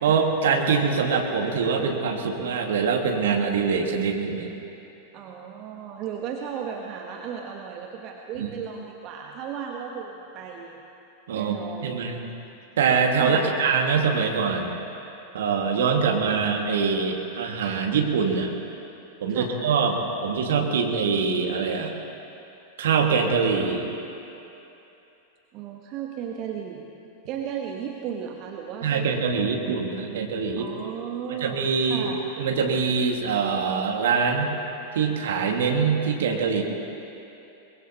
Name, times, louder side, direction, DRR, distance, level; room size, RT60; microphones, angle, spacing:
voice 1, 0.0-4.5 8.4-8.5 11.3-11.5 11.8-12.2 12.8-14.7 15.3-18.5 19.2-21.9 22.8-23.9 28.8-30.7 31.4-32.1 32.4-34.5 34.9-36.6, right 5 dB, 60° right, 2 dB, 1.8 m, -24 dB
voice 2, 5.1-10.8 11.3-12.3 13.2-13.5 19.3-19.6 25.5-26.9 27.3-29.7 30.6-32.2, right 8 dB, 40° right, 1 dB, 1.1 m, -35 dB
23.0 x 21.5 x 2.9 m, 2.9 s
figure-of-eight pair, 90°, 0 cm